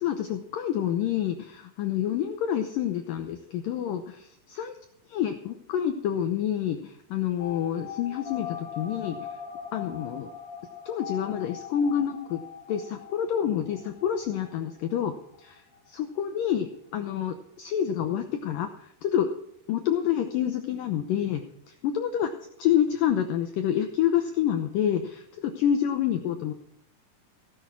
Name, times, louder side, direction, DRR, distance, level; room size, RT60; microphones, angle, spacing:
voice 1, 0.0-4.7 5.1-9.3 9.7-10.3 10.9-12.4 12.7-19.3 19.7-22.3 22.6-26.5, left 9 dB, 80° left, 6 dB, 2.0 m, -28 dB
sound 1, 7.4-15.9 16.2-16.3 16.5-16.6, left 8 dB, 40° left, 5.5 m, -41 dB
16.5 x 10.5 x 4.6 m, 0.72 s
omnidirectional pair, 4.9 m